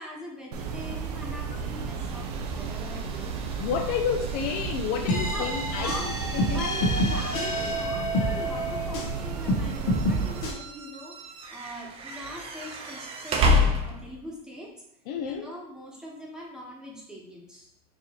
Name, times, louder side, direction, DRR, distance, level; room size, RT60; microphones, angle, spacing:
voice 1, 0.0-3.3 5.3-6.1 6.4-14.7 15.2-17.7, equal, 5° right, -3 dB, 1.1 m, -41 dB
sound 1, 0.5-10.5, right 5 dB, 80° right, 0.6 m, -34 dB
sound 2, 1.5-14.4, left 1 dB, 30° right, 0.6 m, -32 dB
voice 2, 3.6-6.6 15.1-15.5, left 7 dB, 50° left, 5 dB, 0.4 m, -30 dB
sound 3, 5.1-9.2 9.5-10.5, equal, 70° left, 1.1 m, -28 dB
4.6 x 2.6 x 2.9 m, 0.78 s
hypercardioid pair, 110°, 20 cm